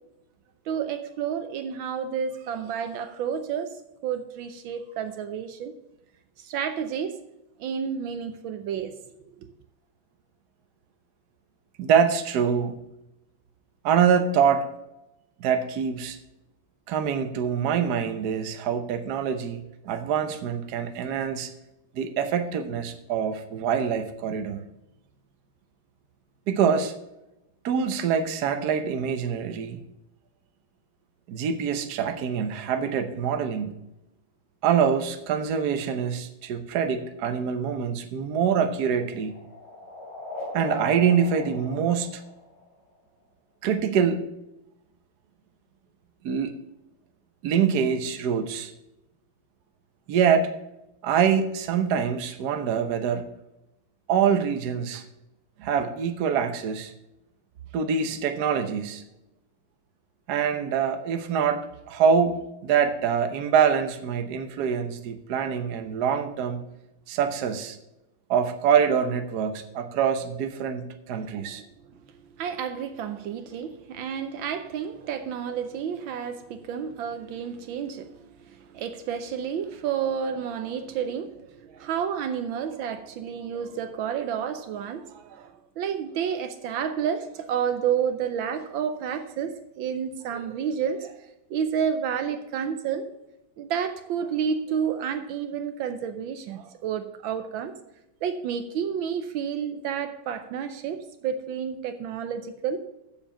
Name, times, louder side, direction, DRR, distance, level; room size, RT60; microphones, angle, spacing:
voice 1, 0.7-5.7 6.4-7.2 7.6-8.9 9.4-9.5 71.1-71.8 72.2-93.1 93.6-97.7 98.2-102.8, right 7 dB, 75° right, 8 dB, 1.5 m, -30 dB
voice 2, 11.8-12.8 13.8-14.6 15.4-16.2 16.9-21.5 21.9-24.6 26.5-26.9 27.6-29.8 31.3-33.7 34.6-39.3 40.5-42.2 43.6-44.2 46.2-46.6 47.4-48.7 50.1-50.5 51.0-53.3 54.1-55.0 55.6-56.9 57.7-59.0 60.3-66.6 67.1-67.8 68.3-71.6, right 7 dB, 60° right, 8 dB, 1.3 m, -25 dB
sound 1, 38.2-42.9, left 2 dB, 50° left, 3.1 m, -39 dB
7.3 x 7.1 x 7.0 m, 0.90 s
omnidirectional pair, 2.2 m